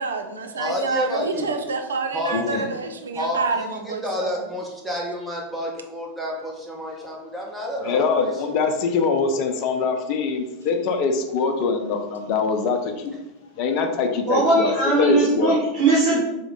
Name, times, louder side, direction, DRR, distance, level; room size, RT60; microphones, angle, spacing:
voice 1, 0.0-4.3, right 4 dB, 80° right, 6 dB, 0.4 m, -28 dB
voice 2, 0.6-1.5 2.1-2.7 3.1-8.6 9.3-9.4, equal, 5° right, -3 dB, 1.1 m, -30 dB
voice 3, 7.9-13.2 13.6-14.7 15.0-15.6, left 4 dB, 50° left, 5 dB, 0.6 m, -23 dB
voice 4, 14.3-16.2, right 2 dB, 45° right, -6 dB, 1.0 m, -19 dB
3.6 x 3.0 x 3.6 m, 0.97 s
hypercardioid pair, 90°, 0 cm